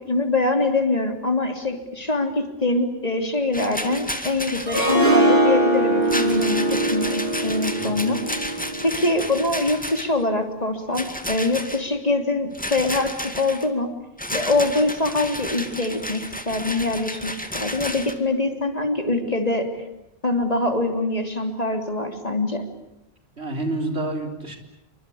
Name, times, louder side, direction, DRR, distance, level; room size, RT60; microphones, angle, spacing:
voice 1, 0.1-8.2 8.8-13.9 14.3-16.2 16.5-19.8 20.2-22.6, left 2 dB, 40° left, 5 dB, 3.3 m, -24 dB
Rattle, 3.5-5.0 6.0-10.2 10.9-11.8 12.5-13.7 14.2-18.1, left 1 dB, 10° left, 2.2 m, -32 dB
Harp, 4.7-9.7, right 1 dB, 65° right, 4.4 m, -22 dB
voice 2, 23.4-24.6, right 2 dB, 90° right, 4 dB, 4.3 m, -28 dB
27.5 x 25.0 x 8.6 m, 0.84 s
omnidirectional pair, 1.1 m